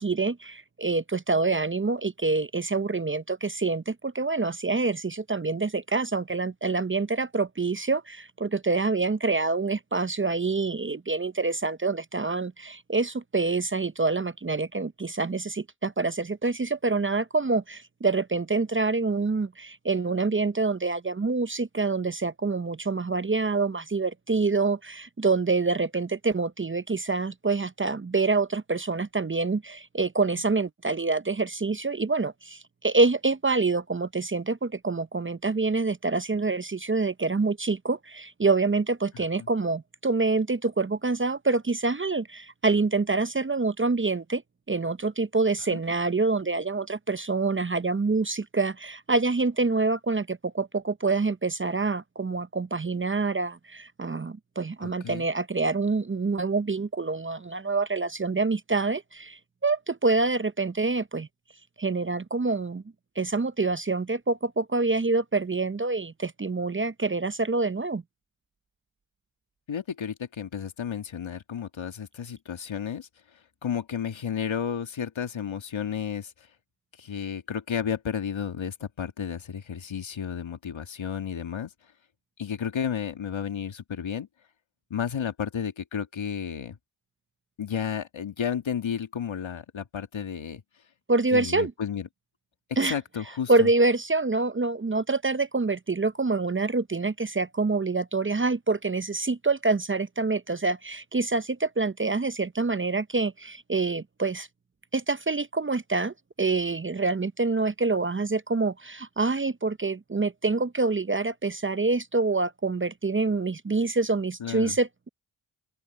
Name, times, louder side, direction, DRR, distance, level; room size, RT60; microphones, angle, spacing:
voice 1, 0.0-44.4 44.7-61.3 61.8-62.8 63.2-68.0 91.1-91.7 92.8-93.0 93.5-104.5 104.9-115.1, right 3 dB, 25° right, 0.8 m, -26 dB
voice 2, 39.1-39.5 45.7-45.8 54.8-55.3 69.7-73.1 73.6-76.5 77.0-81.7 82.4-84.3 84.9-86.8 87.6-90.6 91.3-92.1 92.8-93.7 114.4-114.8, left 8 dB, 70° left, 2.1 m, -32 dB
open air
cardioid pair, 40°, 48 cm